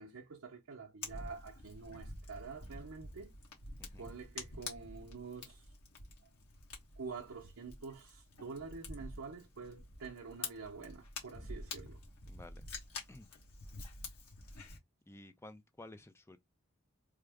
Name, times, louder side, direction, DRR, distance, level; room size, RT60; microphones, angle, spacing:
voice 1, 0.0-3.3 4.0-5.7 7.0-12.0, right 4 dB, 70° right, 0.6 m, -47 dB
Fire, 1.0-14.8, left 3 dB, 80° left, 1.2 m, -48 dB
voice 2, 3.8-4.1 12.3-12.7 13.1-13.3 15.1-16.4, left 2 dB, 10° left, 0.4 m, -53 dB
3.4 x 2.0 x 3.4 m
head